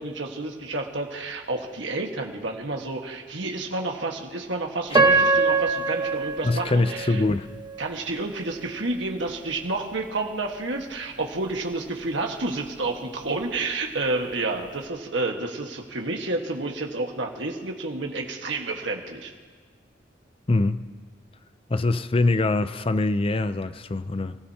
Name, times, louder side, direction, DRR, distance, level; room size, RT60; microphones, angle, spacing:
voice 1, 0.0-7.2 7.8-19.3, right 2 dB, 85° right, 1.6 m, -30 dB
Piano, 4.9-7.9 8.5-8.6 9.3-9.5, right 3 dB, 25° right, 1.2 m, -23 dB
voice 2, 6.4-7.5 20.5-20.8 21.7-24.4, left 2 dB, 30° left, 0.5 m, -23 dB
29.0 x 16.0 x 2.9 m
head